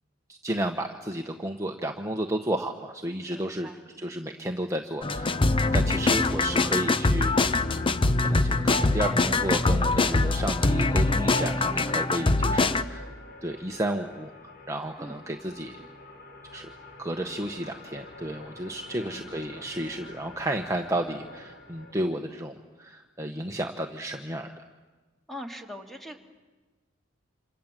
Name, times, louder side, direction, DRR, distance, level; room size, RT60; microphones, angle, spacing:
voice 1, 0.3-3.7 4.0-13.1 13.4-14.3 14.7-15.8 16.5-16.7 17.0-24.5, right 1 dB, 15° right, 3 dB, 1.1 m, -32 dB
voice 2, 3.3-3.8 15.0-15.2 18.9-19.6 25.3-26.2, equal, ahead, 3 dB, 2.3 m, -42 dB
sound 1, 5.0-12.8, left 3 dB, 25° left, 0.8 m, -23 dB
sound 2, 5.2-21.9, left 2 dB, 55° left, 3.2 m, -48 dB
28.5 x 27.0 x 7.5 m, 1.3 s
head